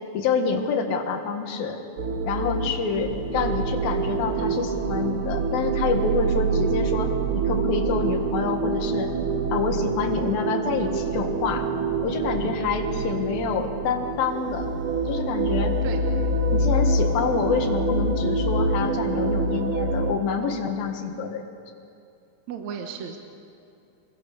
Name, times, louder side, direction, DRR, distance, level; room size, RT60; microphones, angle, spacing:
voice 1, 0.1-1.8 2.3-9.1 9.5-11.7 12.0-14.7 15.1-15.8 16.5-21.4, left 5 dB, 70° left, 5 dB, 3.5 m, -27 dB
sound 1, 2.0-20.1, right 3 dB, 45° right, 1.8 m, -26 dB
voice 2, 22.5-23.2, right 7 dB, 60° right, 4 dB, 2.2 m, -34 dB
26.5 x 22.5 x 6.9 m, 2.6 s
omnidirectional pair, 4.3 m